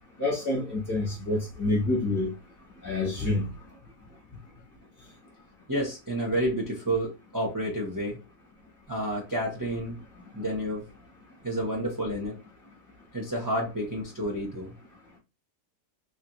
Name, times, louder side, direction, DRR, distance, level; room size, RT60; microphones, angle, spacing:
voice 1, 0.2-2.3 2.8-3.5, left 2 dB, 15° left, 0.7 m, -27 dB
voice 2, 5.7-8.2 8.9-10.0 10.3-10.8 11.4-12.4 13.1-14.7, right 1 dB, 25° right, 0.4 m, -30 dB
3.1 x 2.4 x 2.9 m
omnidirectional pair, 1.7 m